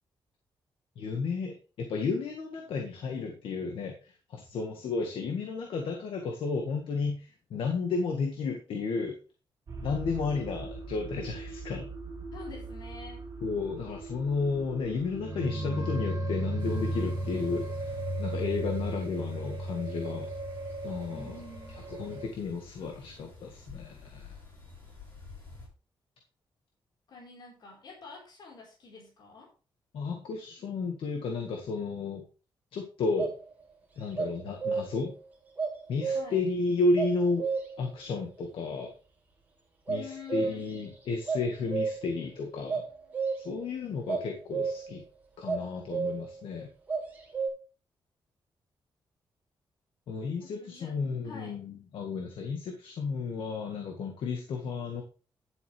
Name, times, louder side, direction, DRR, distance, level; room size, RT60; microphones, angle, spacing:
voice 1, 0.9-9.1 9.8-11.9 13.4-20.3 20.8-21.3 21.9-24.3 29.9-32.2 32.7-33.3 34.0-35.1 35.9-37.5 37.8-38.9 39.9-42.8 43.4-45.0 45.4-46.7 50.1-55.0, left 4 dB, 90° left, 4 dB, 1.7 m, -32 dB
sound 1, 9.7-22.3, right 1 dB, 40° right, 2.1 m, -36 dB
voice 2, 12.3-13.2 21.1-21.8 27.1-29.5 36.1-36.4 39.9-40.7 50.4-50.9 51.2-51.6, left 4 dB, 55° left, -2 dB, 4.3 m, -47 dB
sound 2, 16.6-25.7, left 3 dB, 25° left, 5.7 m, -51 dB
sound 3, 33.2-33.4 34.1-35.1 35.6-36.5 36.9-37.9 39.9-40.8 41.1-42.2 42.7-43.6 44.1-45.0 45.5-46.4 46.9-47.5, right 5 dB, 20° right, 3.1 m, -32 dB
11.0 x 8.2 x 3.4 m, 0.35 s
wide cardioid pair, 175°, 9 cm